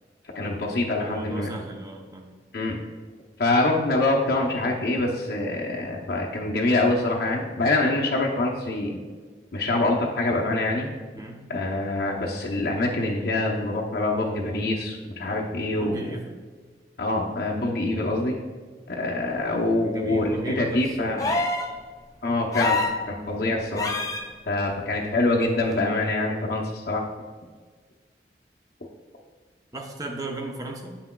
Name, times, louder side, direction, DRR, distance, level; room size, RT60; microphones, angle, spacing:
voice 1, 0.3-1.5 2.5-2.8 3.4-9.0 9.5-10.9 11.5-16.0 17.0-18.3 18.9-21.3 22.2-22.8 23.1-23.9 24.5-27.0, left 2 dB, 60° left, -3 dB, 0.7 m, -25 dB
voice 2, 1.0-2.3 11.1-11.5 15.7-16.4 19.8-21.2 29.7-31.0, right 1 dB, 20° right, 2 dB, 0.7 m, -36 dB
sound 1, 21.2-21.7 22.5-23.0 23.8-24.2 25.7-25.8, left 3 dB, 20° left, 0.5 m, -25 dB
8.5 x 5.8 x 2.3 m, 1.5 s
head